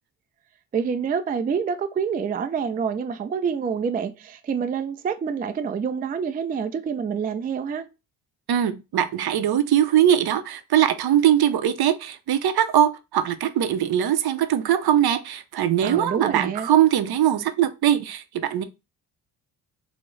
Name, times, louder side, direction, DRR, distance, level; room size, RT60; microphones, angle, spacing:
voice 1, 0.7-7.9 15.8-16.7, right 6 dB, 20° right, 0.3 m, -27 dB
voice 2, 8.5-18.6, right 10 dB, 60° right, 0.6 m, -21 dB
4.3 x 2.1 x 3.1 m
supercardioid pair, 60°, 44 cm